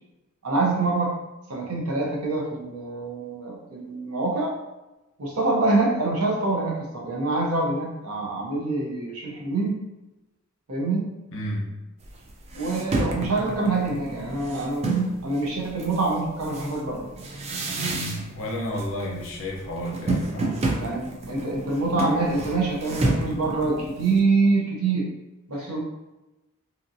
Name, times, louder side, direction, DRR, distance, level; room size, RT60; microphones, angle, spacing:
voice 1, 0.4-1.2 1.5-4.5 5.2-9.8 10.7-11.1 12.5-14.9 15.2-17.1 20.8-25.1 25.5-25.8, right 3 dB, 75° right, -1 dB, 0.7 m, -25 dB
voice 2, 11.3-11.7 18.4-20.7 25.6-25.7, left 1 dB, 60° left, -1 dB, 0.6 m, -31 dB
sound 1, 12.1-12.2 12.5-15.2 15.8-18.5 18.7-19.3 19.6-24.2, right 2 dB, 30° right, 0.3 m, -29 dB
2.8 x 2.6 x 2.5 m, 1.0 s
head